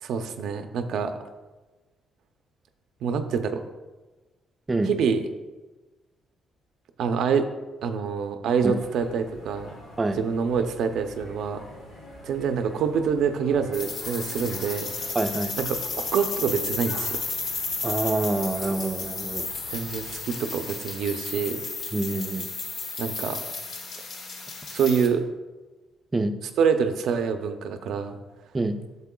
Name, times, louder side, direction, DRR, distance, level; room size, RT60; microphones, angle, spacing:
voice 1, 0.0-1.2 3.0-3.7 4.9-5.2 7.0-7.5 7.8-9.7 10.2-11.6 12.2-14.9 15.6-17.2 19.7-21.6 23.0-23.4 24.7-25.2 26.6-28.2, right 6 dB, 75° right, 7 dB, 0.5 m, -26 dB
sound 1, 8.6-20.2, equal, 85° left, 2.0 m, -46 dB
sound 2, 13.7-25.1, left 4 dB, 65° left, 1.0 m, -33 dB
voice 2, 15.1-15.5 17.8-19.5 21.9-22.5 26.1-26.4 28.5-28.8, right 2 dB, 25° right, 8 dB, 0.5 m, -26 dB
8.2 x 6.8 x 2.3 m, 1.2 s
cardioid pair, 90°, 0 cm